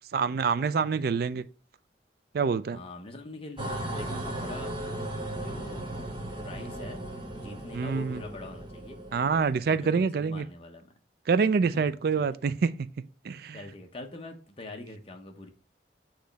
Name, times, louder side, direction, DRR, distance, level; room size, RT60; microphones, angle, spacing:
voice 1, 0.1-1.4 2.3-2.8 7.7-8.2 9.1-10.5 11.3-12.9 13.2-13.6, right 5 dB, 60° right, 0.4 m, -26 dB
voice 2, 2.7-4.8 5.3-6.0 6.4-9.0 9.7-10.9 11.6-11.8 12.1-12.2 13.5-15.5, left 2 dB, 30° left, 0.9 m, -44 dB
sound 1, 3.6-9.6, right 1 dB, 25° right, 1.0 m, -37 dB
6.6 x 3.0 x 5.2 m
head